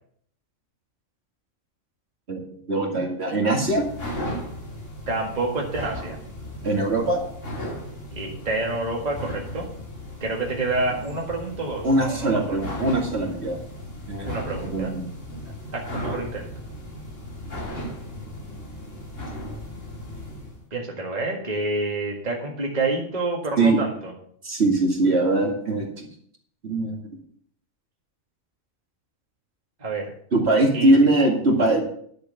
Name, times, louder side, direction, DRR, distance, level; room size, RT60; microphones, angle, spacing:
voice 1, 2.3-3.9 6.6-7.2 11.8-13.6 14.1-15.0 23.6-23.8 24.4-26.1 26.6-27.0 30.3-31.8, right 2 dB, 50° right, 1 dB, 2.4 m, -22 dB
sound 1, 3.4-20.6, left 1 dB, 65° left, 3.4 m, -36 dB
voice 2, 5.1-6.2 8.1-9.7 10.2-12.5 14.2-14.9 15.7-16.5 20.7-24.1 29.8-30.1 30.7-30.9, right 2 dB, 30° right, -1 dB, 1.9 m, -28 dB
11.0 x 6.6 x 6.9 m, 0.63 s
omnidirectional pair, 1.4 m